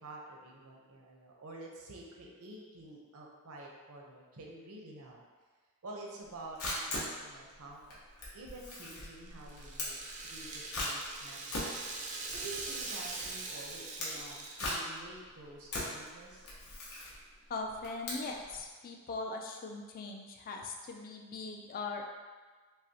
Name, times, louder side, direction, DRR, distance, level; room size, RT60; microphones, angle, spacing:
voice 1, 0.0-5.2 5.8-7.8 8.3-10.0 10.3-11.8 12.3-16.5, right 2 dB, 70° right, -1 dB, 0.7 m, -49 dB
Camera, 6.2-18.6, left 1 dB, 75° left, 1.0 m, -41 dB
Rattle (instrument), 8.8-15.0, right 3 dB, 35° right, 0.4 m, -42 dB
voice 2, 17.5-22.0, left 3 dB, 40° left, 2 dB, 0.4 m, -40 dB
5.4 x 2.0 x 2.7 m, 1.4 s
head